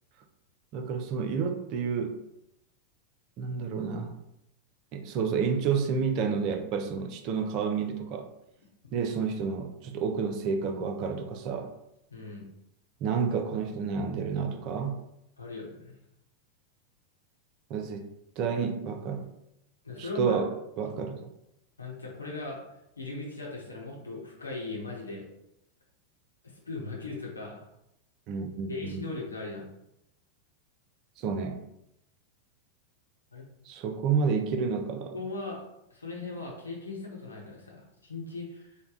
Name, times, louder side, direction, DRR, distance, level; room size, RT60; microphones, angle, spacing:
voice 1, 0.7-2.2 3.4-4.2 4.9-8.3 8.9-11.7 13.0-15.0 17.7-19.3 20.0-21.3 28.3-29.0 31.2-31.6 33.7-35.2, right 6 dB, 40° right, 6 dB, 0.4 m, -30 dB
voice 2, 12.1-12.4 15.4-16.0 19.8-20.4 21.8-22.6 23.0-25.2 26.7-27.7 28.7-29.7 33.3-33.4 35.1-35.6 35.9-38.7, left 3 dB, 80° left, -2 dB, 0.9 m, -38 dB
3.2 x 2.1 x 3.8 m, 0.83 s
figure-of-eight pair, 90°, 0 cm